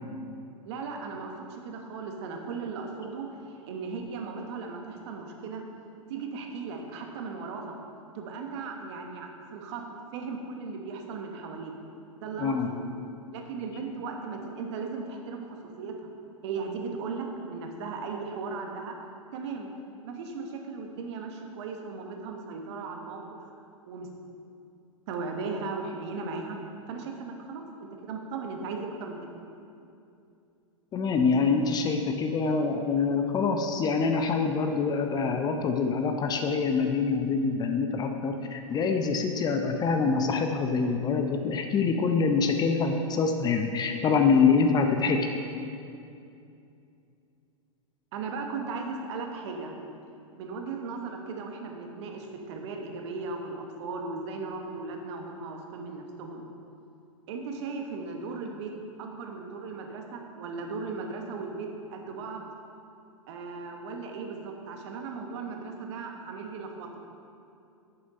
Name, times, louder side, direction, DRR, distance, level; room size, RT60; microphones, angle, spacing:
voice 1, 0.6-5.6 6.1-7.8 8.1-9.9 10.1-11.7 12.2-12.9 13.3-16.1 16.4-19.0 19.3-19.7 20.0-23.5 23.9-24.1 25.1-26.6 26.9-27.6 28.0-29.3 48.1-49.7 50.3-56.4 57.3-58.7 59.0-62.5 63.3-67.0, right 4 dB, 55° right, 3 dB, 1.3 m, -37 dB
voice 2, 12.4-12.7 30.9-45.3, left 5 dB, 25° left, 5 dB, 0.6 m, -25 dB
8.7 x 6.9 x 5.3 m, 2.6 s
hypercardioid pair, 105°, 17 cm